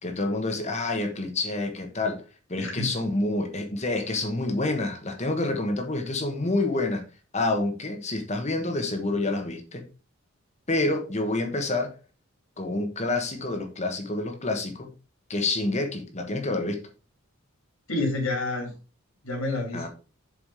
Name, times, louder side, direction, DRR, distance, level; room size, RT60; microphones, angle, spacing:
voice 1, 0.0-2.2 2.5-7.0 7.3-9.8 10.7-12.0 12.6-14.9 15.3-16.8 19.7-19.9, left 2 dB, 30° left, 1.3 m, -28 dB
voice 2, 2.6-2.9 17.9-18.7 19.2-19.9, left 2 dB, 80° left, 3.2 m, -28 dB
7.5 x 5.0 x 4.8 m
head